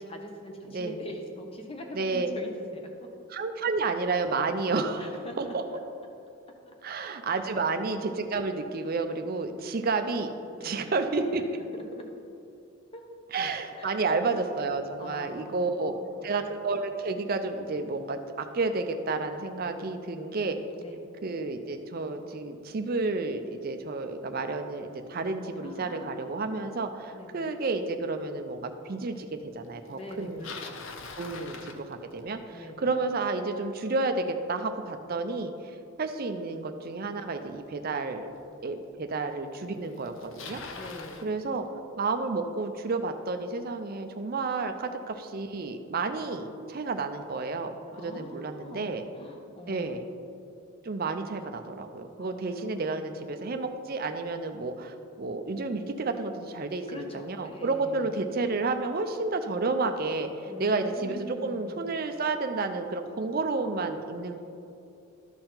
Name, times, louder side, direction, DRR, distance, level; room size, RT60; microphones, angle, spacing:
voice 1, 0.0-3.1 5.0-5.8 6.7-6.8 7.3-7.6 10.6-10.8 11.5-12.0 12.9-13.0 13.7-14.1 15.0-16.5 20.8-21.1 25.6-26.8 27.1-27.5 29.9-30.9 31.2-31.8 32.5-32.9 40.7-41.3 47.9-50.0 51.4-51.7 52.2-53.2 56.9-58.1 60.5-61.9, equal, 25° left, 2 dB, 0.8 m, -44 dB
voice 2, 1.9-2.3 3.3-5.1 5.4-5.6 6.8-10.3 10.6-11.4 13.3-15.9 16.2-20.6 21.2-29.3 29.5-30.5 31.2-35.5 36.0-38.3 38.6-40.6 41.2-41.6 42.0-47.7 48.0-49.0 49.7-50.0 50.8-60.3 60.6-64.4, right 3 dB, 45° right, 7 dB, 0.5 m, -31 dB
Bicycle, 30.1-32.4 37.5-37.6 38.4-38.5 39.5-39.6 39.8-41.3, left 4 dB, 60° left, 0.6 m, -42 dB
12.5 x 4.4 x 3.8 m, 2.7 s
head